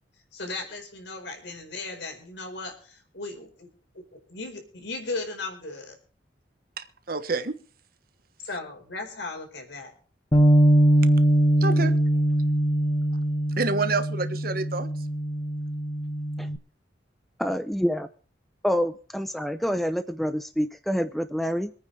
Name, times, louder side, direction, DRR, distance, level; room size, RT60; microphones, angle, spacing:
voice 1, 0.3-3.7 3.9-5.9 8.4-9.9, left 3 dB, 70° left, 4.7 m, -36 dB
voice 2, 6.8-7.6 11.6-11.9 13.6-14.9, right 3 dB, 50° right, 1.3 m, -28 dB
Bass guitar, 10.3-16.6, right 1 dB, 25° left, 1.2 m, -22 dB
voice 3, 17.4-18.1 18.6-21.7, equal, ahead, 0.6 m, -27 dB
25.5 x 9.3 x 3.3 m
head